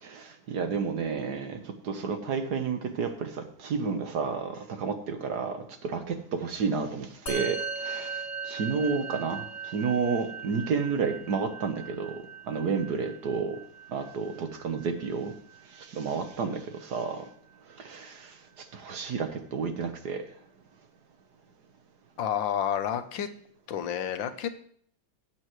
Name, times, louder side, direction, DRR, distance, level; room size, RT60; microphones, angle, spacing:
voice 1, 0.0-13.6 13.9-15.3 15.8-17.2 17.8-20.3, right 5 dB, 60° right, 7 dB, 1.5 m, -31 dB
Musical instrument, 7.3-16.8, right 5 dB, 35° left, 2.0 m, -39 dB
voice 2, 22.2-23.3 23.7-24.5, left 9 dB, 80° left, 10 dB, 1.6 m, -30 dB
18.0 x 7.9 x 3.1 m, 0.62 s
omnidirectional pair, 2.1 m